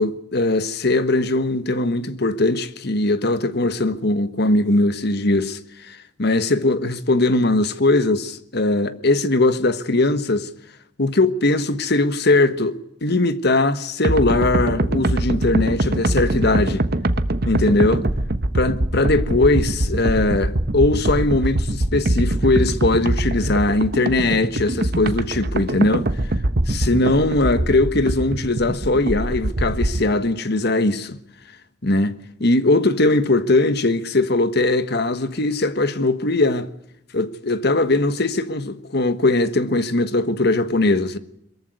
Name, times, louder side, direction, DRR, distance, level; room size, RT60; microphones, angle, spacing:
voice 1, 0.0-10.5 11.0-16.8 17.4-18.0 18.5-26.1 26.7-31.2 31.8-32.1 32.4-36.7 37.1-41.2, left 2 dB, 60° left, 1.4 m, -20 dB
sound 1, 14.0-30.1, right 1 dB, 55° right, 1.2 m, -23 dB
23.0 x 14.5 x 9.5 m
head